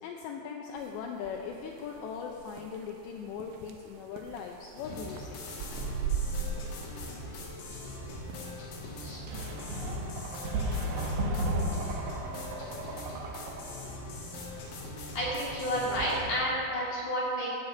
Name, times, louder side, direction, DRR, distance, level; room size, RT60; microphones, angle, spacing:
voice 1, 0.0-5.4, left 6 dB, 85° left, 1 dB, 2.5 m, -39 dB
sound 1, 0.8-16.1, right 6 dB, 90° right, 3.3 m, -43 dB
sound 2, 4.8-16.3, left 2 dB, 65° left, 3.3 m, -42 dB
sound 3, 9.3-13.8, right 1 dB, 70° right, 2.0 m, -34 dB
voice 2, 15.0-17.5, equal, 40° left, -6 dB, 3.0 m, -31 dB
13.5 x 6.5 x 8.4 m, 2.8 s
omnidirectional pair, 5.9 m